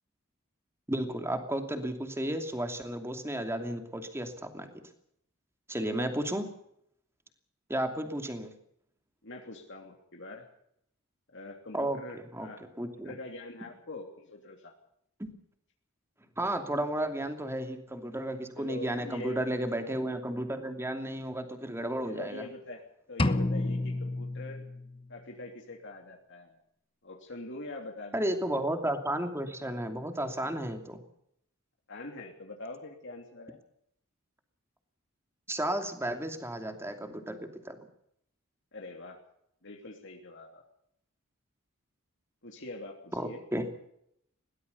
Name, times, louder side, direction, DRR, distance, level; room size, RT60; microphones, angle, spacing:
voice 1, 0.9-4.7 5.7-6.5 7.7-8.5 11.7-12.5 12.8-13.1 15.2-15.3 16.4-22.4 28.1-31.0 35.5-37.8 43.2-43.7, right 1 dB, 10° right, 6 dB, 2.7 m, -33 dB
voice 2, 9.2-10.5 11.3-14.7 18.6-19.4 22.0-22.8 23.1-24.6 25.1-26.6 27.0-28.3 31.9-33.6 38.7-39.2 39.6-40.6 42.4-43.4, left 2 dB, 60° left, 2 dB, 3.0 m, -44 dB
sound 1, 23.2-25.2, left 2 dB, 25° left, 1.0 m, -30 dB
21.5 x 18.0 x 7.0 m, 0.73 s
head